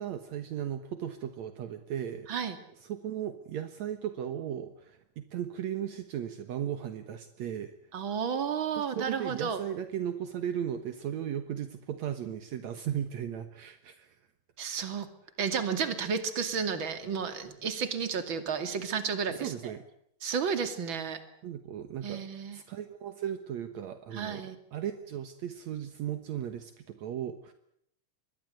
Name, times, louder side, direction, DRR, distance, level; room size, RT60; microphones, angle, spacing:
voice 1, 0.0-2.3 2.8-7.7 8.8-14.1 19.3-19.8 21.4-27.5, right 10 dB, 70° right, 9 dB, 2.6 m, -36 dB
voice 2, 7.9-9.6 14.6-15.1 15.4-19.5 20.2-21.2 22.0-22.6 24.1-24.6, right 6 dB, 40° right, 9 dB, 3.1 m, -32 dB
25.0 x 21.5 x 8.0 m, 0.71 s
omnidirectional pair, 3.4 m